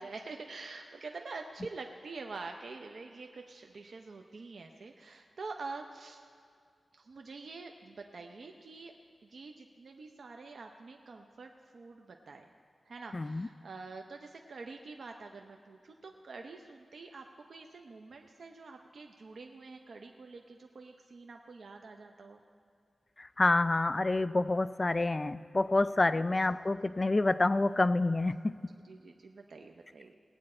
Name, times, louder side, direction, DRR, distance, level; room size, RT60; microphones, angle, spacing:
voice 1, 0.0-6.2 6.9-8.9 9.2-12.5 12.9-22.4 26.1-26.2 28.8-30.2, right 3 dB, 75° right, 3 dB, 0.6 m, -46 dB
voice 2, 13.1-13.5 23.2-28.6, left 2 dB, 35° left, 14 dB, 0.3 m, -28 dB
19.0 x 8.7 x 4.3 m, 2.3 s
wide cardioid pair, 80°, 0 cm